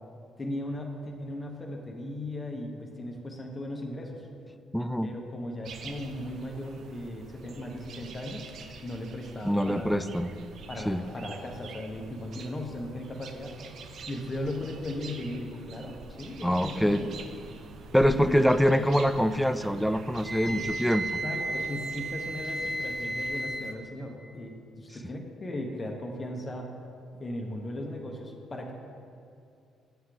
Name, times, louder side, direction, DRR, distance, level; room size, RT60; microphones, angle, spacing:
voice 1, 0.4-4.3 5.0-8.5 8.8-10.1 10.7-13.6 14.1-17.1 18.0-18.4 20.4-20.7 21.2-26.7 27.2-28.7, left 1 dB, 35° left, 1 dB, 0.9 m, -37 dB
voice 2, 4.7-5.1 9.4-10.3 10.9-11.0 16.4-17.0 17.9-21.0, equal, ahead, 11 dB, 0.3 m, -24 dB
sound 1, 5.6-23.4, right 4 dB, 65° right, 0.4 m, -46 dB
Wind instrument woodwind instrument, 20.2-23.8, right 1 dB, 35° right, 0.7 m, -33 dB
7.9 x 3.7 x 4.6 m, 2.4 s
supercardioid pair, 65°, 0 cm